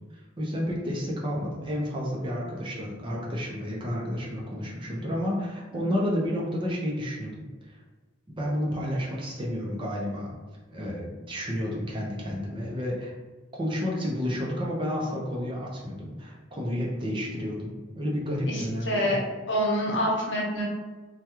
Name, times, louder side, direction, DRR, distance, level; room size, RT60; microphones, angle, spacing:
voice 1, 0.4-7.7 8.3-10.3 10.7-13.1 13.6-17.7 18.0-19.1, equal, 25° right, -3 dB, 0.5 m, -31 dB
voice 2, 5.7-6.1 18.5-19.2 19.5-20.7, equal, 70° left, -3 dB, 0.9 m, -27 dB
3.3 x 2.3 x 2.9 m, 1.3 s
head